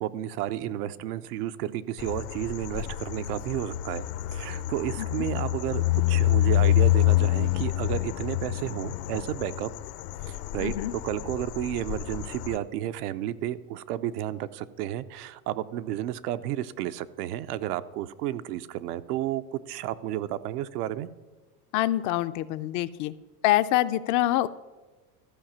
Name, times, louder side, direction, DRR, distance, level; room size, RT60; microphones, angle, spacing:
voice 1, 0.0-4.0 4.3-9.7 10.3-21.1, right 12 dB, 80° right, 12 dB, 0.7 m, -32 dB
sound 1, 2.0-12.6, left 15 dB, 70° left, 0.8 m, -27 dB
voice 2, 10.6-10.9 21.7-23.1 23.4-24.5, left 15 dB, 45° left, 13 dB, 0.4 m, -25 dB
13.5 x 4.9 x 7.3 m, 1.2 s
supercardioid pair, 120°, 46 cm